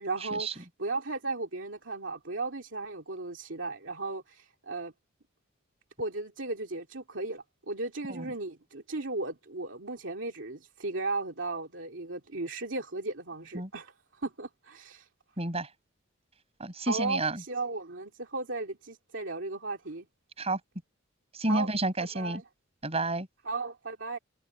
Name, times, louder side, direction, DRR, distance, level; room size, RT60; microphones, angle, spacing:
voice 1, 0.0-4.9 6.0-15.1 16.9-20.1 21.5-21.7 22.1-22.4 23.4-24.2, right 3 dB, 65° right, 2.6 m, -35 dB
voice 2, 15.4-15.7 16.6-17.4 20.4-20.6 21.3-22.4 22.8-23.3, right 2 dB, 30° right, 7.5 m, -30 dB
head